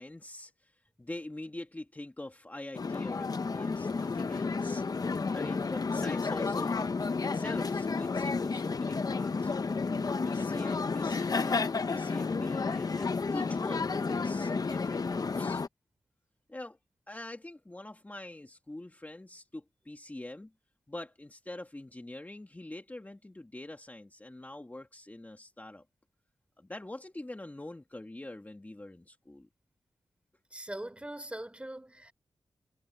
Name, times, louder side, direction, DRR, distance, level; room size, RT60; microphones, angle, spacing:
voice 1, 0.0-6.9 7.2-9.9 10.2-15.6 16.5-16.8 17.1-20.5 20.9-25.9 26.6-29.5, left 1 dB, 20° left, 1.9 m, -44 dB
sound 1, 2.7-15.7, left 4 dB, 45° left, 0.8 m, -31 dB
voice 2, 30.5-32.1, right 1 dB, 10° right, 3.7 m, -41 dB
wide cardioid pair, 85°, 9 cm